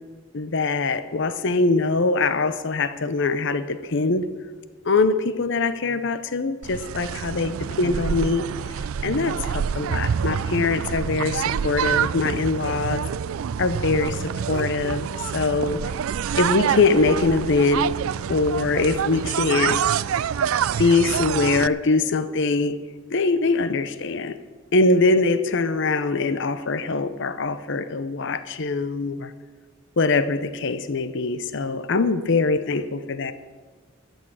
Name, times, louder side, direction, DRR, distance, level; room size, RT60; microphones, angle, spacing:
voice 1, 0.3-4.3 4.8-8.5 9.0-13.0 13.6-15.1 15.3-15.8 16.4-17.9 18.3-19.8 20.8-22.8 23.1-24.3 24.7-29.3 30.0-33.3, left 3 dB, 60° left, 0.7 m, -22 dB
sound 1, 6.6-21.7, right 8 dB, 80° right, 0.4 m, -27 dB
13.0 x 6.5 x 9.0 m
head